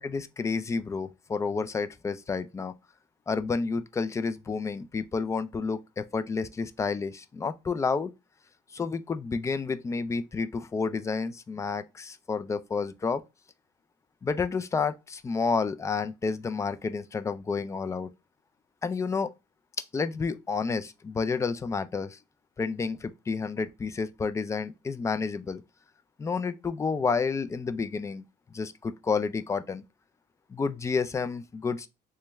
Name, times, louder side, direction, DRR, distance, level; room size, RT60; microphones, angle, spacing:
voice 1, 0.0-2.7 3.3-8.1 8.7-13.2 14.2-18.1 18.8-19.3 19.9-22.2 22.6-25.6 26.2-28.2 28.5-29.8 30.5-31.9, left 4 dB, 20° left, 0.3 m, -30 dB
3.3 x 3.3 x 3.0 m
cardioid pair, 120°, 15 cm